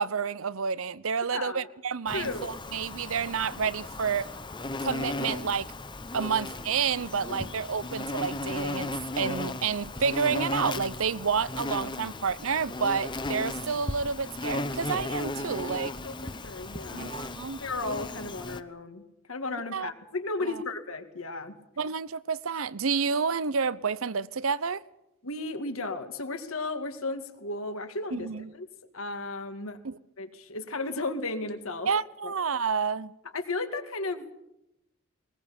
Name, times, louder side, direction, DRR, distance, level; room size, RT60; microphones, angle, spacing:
voice 1, 0.0-4.3 4.8-5.7 6.1-15.9 16.9-17.6 19.7-19.9 20.5-20.6 21.8-24.8 28.1-28.5 29.8-30.0 31.9-33.1, right 6 dB, 75° right, 0.8 m, -29 dB
voice 2, 1.3-1.7 2.1-2.5 7.3-7.5 7.8-7.9 15.3-15.4 16.0-17.1 17.6-19.0 19.3-21.6 25.2-28.3 28.5-28.7 28.9-29.8 30.2-31.9 32.2-32.4 33.3-34.3, left 2 dB, 75° left, 2.3 m, -34 dB
Insect, 2.1-18.6, left 2 dB, 20° left, 0.8 m, -36 dB
21.0 x 20.0 x 8.7 m
head